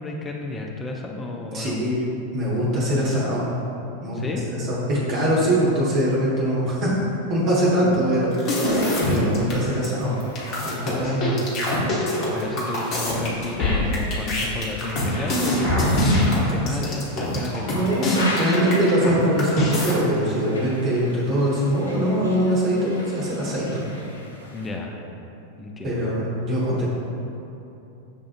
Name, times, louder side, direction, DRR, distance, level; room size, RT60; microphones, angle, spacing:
voice 1, 0.0-2.0 4.1-4.5 7.8-8.1 10.8-11.4 12.3-18.1 24.5-25.0 25.6-26.1, left 2 dB, 15° left, 0 dB, 0.4 m, -32 dB
voice 2, 1.5-2.0 2.3-3.4 4.0-4.2 4.5-6.9 7.3-10.1 10.6-11.3 17.7-24.0 25.8-26.9, equal, 35° right, -6 dB, 1.0 m, -23 dB
sound 1, 8.3-9.5 9.8-9.9 10.2-19.1 19.4-19.9, left 1 dB, 35° left, 1.0 m, -23 dB
sound 2, 8.8-24.7, left 1 dB, 75° left, 0.5 m, -39 dB
7.2 x 2.4 x 2.4 m, 2.9 s
figure-of-eight pair, 90°, 0 cm